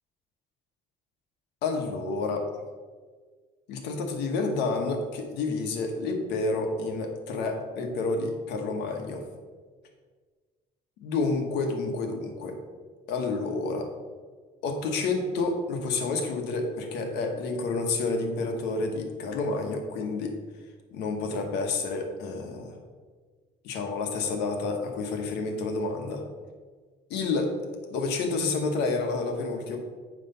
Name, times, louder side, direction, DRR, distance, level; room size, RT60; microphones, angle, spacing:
voice 1, 1.6-2.5 3.7-9.2 11.0-12.6 13.1-13.9 14.6-20.3 20.9-22.8 23.6-26.2 27.1-27.5 27.9-29.8, left 3 dB, 90° left, 4 dB, 1.2 m, -29 dB
9.3 x 3.3 x 5.5 m, 1.5 s
cardioid pair, 110°, 17 cm